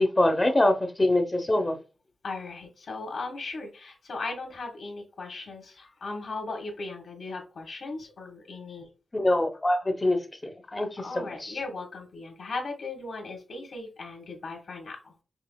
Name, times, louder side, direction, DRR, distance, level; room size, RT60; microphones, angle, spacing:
voice 1, 0.0-1.8 9.1-11.5, left 1 dB, 25° left, 6 dB, 0.8 m, -24 dB
voice 2, 2.2-8.9 9.2-9.3 10.8-15.1, left 3 dB, 70° left, 0 dB, 1.5 m, -37 dB
5.6 x 3.2 x 2.3 m, 0.33 s
wide cardioid pair, 95°, 0 cm